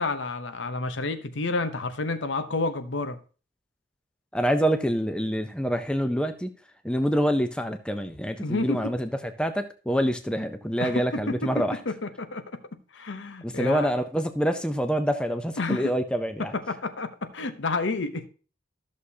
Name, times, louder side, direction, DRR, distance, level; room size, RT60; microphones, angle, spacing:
voice 1, 0.0-3.2 8.4-8.9 10.8-12.4 12.9-13.9 15.6-15.9 16.5-18.3, left 3 dB, 75° left, 0.8 m, -30 dB
voice 2, 4.3-6.5 6.8-11.8 13.4-16.5, equal, 5° left, 0.5 m, -26 dB
13.5 x 6.4 x 2.8 m
head